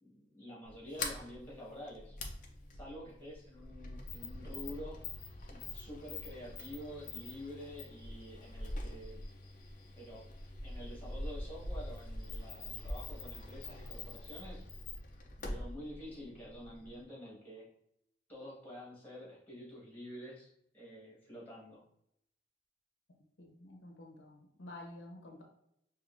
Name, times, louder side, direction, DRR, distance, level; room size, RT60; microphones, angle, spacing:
voice 1, 0.0-2.2 2.8-5.0 5.5-9.3 10.0-14.7 15.4-17.7 18.3-21.8, left 1 dB, 10° left, -5 dB, 1.5 m, -48 dB
Sliding door, 0.6-17.0, left 2 dB, 45° left, 0.6 m, -44 dB
voice 2, 23.4-25.4, left 1 dB, 80° left, 1 dB, 0.9 m, -50 dB
5.1 x 2.6 x 2.5 m, 0.77 s
head